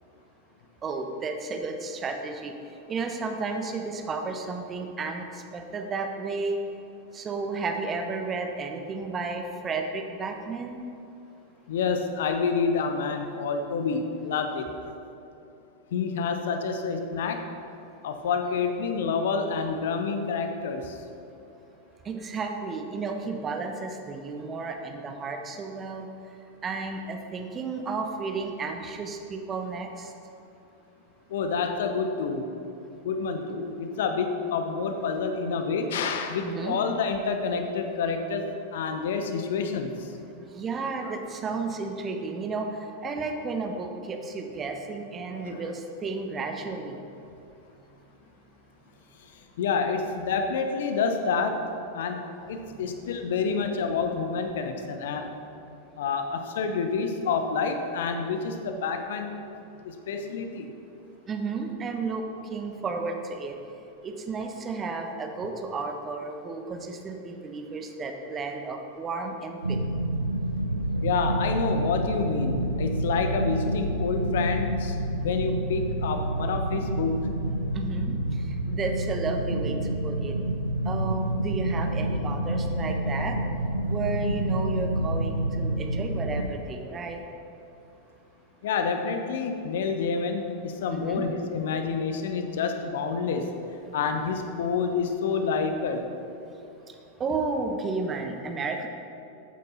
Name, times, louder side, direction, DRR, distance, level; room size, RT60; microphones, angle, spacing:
voice 1, 0.8-2.5 2.9-6.6 7.1-10.8 22.0-26.1 26.6-30.1 36.4-36.8 40.5-42.7 43.0-47.0 53.5-53.7 54.0-54.1 61.3-62.2 62.5-63.5 64.0-69.8 77.7-78.2 78.7-79.8 80.0-80.3 80.8-83.4 83.9-87.2 90.9-91.3 97.2-98.9, right 4 dB, 25° right, 4 dB, 1.2 m, -32 dB
voice 2, 11.7-14.7 15.9-17.5 18.0-21.0 31.3-32.5 33.0-38.5 38.7-40.1 41.0-41.1 45.3-45.7 49.6-52.2 52.5-55.3 56.0-59.4 59.8-60.7 71.0-77.1 88.6-93.5 93.9-96.1, left 5 dB, 55° left, 6 dB, 1.0 m, -28 dB
sound 1, 69.6-86.5, right 1 dB, 80° right, 0.6 m, -28 dB
14.5 x 9.1 x 4.2 m, 2.8 s
figure-of-eight pair, 90°, 0 cm